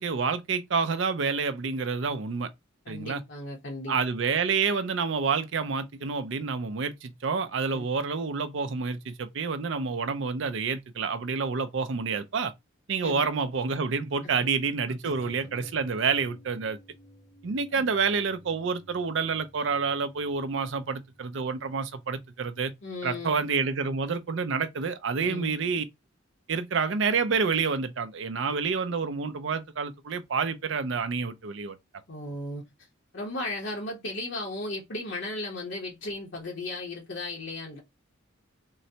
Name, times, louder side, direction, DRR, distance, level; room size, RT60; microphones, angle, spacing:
voice 1, 0.0-2.5 2.9-3.2 3.9-12.5 12.9-16.8 17.4-22.7 23.0-25.8 26.5-31.8, right 5 dB, 60° right, 0.5 m, -28 dB
voice 2, 2.8-4.0 7.7-7.9 13.0-13.2 14.2-14.3 15.0-15.3 17.7-17.8 22.8-23.4 25.2-25.6 32.1-32.6 33.1-37.8, left 2 dB, 60° left, 0.9 m, -36 dB
sound 1, 15.1-24.9 25.2-25.3, equal, 15° left, 0.6 m, -56 dB
3.8 x 2.1 x 2.7 m
head